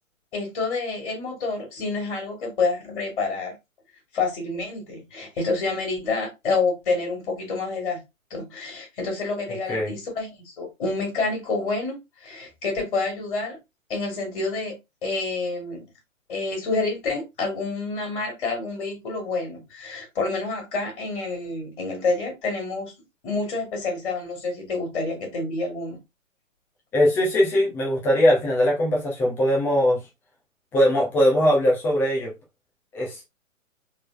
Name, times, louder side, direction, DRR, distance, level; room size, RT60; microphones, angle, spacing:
voice 1, 0.3-3.6 4.1-8.0 8.3-13.6 13.9-14.8 15.0-15.8 16.3-22.9 23.2-26.0, left 3 dB, 40° left, 2.3 m, -28 dB
voice 2, 26.9-30.0 30.7-32.3 32.9-33.2, equal, 5° left, 0.5 m, -20 dB
4.2 x 3.5 x 2.5 m
figure-of-eight pair, 130°, 40 cm